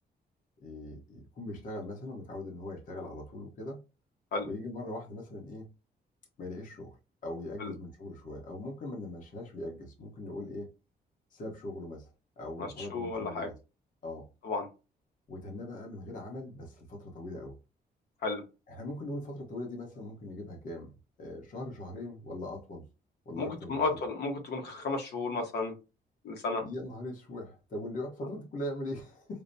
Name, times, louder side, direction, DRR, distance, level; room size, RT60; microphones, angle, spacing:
voice 1, 0.6-3.8 4.4-5.7 6.4-7.0 7.2-10.7 11.3-12.1 12.4-13.5 14.0-14.3 15.3-17.6 18.7-20.9 21.2-22.8 23.2-23.8 26.6-29.4, left 1 dB, 50° left, 1.1 m, -40 dB
voice 2, 12.6-13.5 14.4-14.7 18.2-18.4 23.4-25.7 26.2-26.6, left 3 dB, 75° left, 1.1 m, -33 dB
5.0 x 2.1 x 2.6 m
cardioid pair, 160°, 17 cm